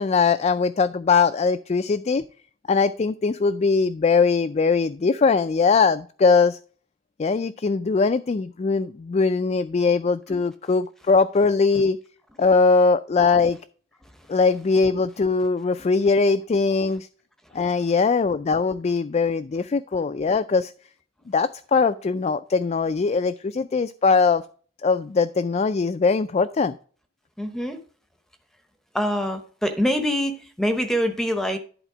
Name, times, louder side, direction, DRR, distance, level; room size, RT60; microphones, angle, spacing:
voice 1, 0.0-2.2 2.7-6.6 7.2-12.0 12.4-13.6 14.3-17.1 17.5-20.7 21.3-24.4 24.8-26.8, left 4 dB, 35° left, 0.4 m, -21 dB
voice 2, 27.4-27.8 28.9-31.6, equal, 5° left, 0.8 m, -24 dB
11.0 x 4.3 x 4.9 m
head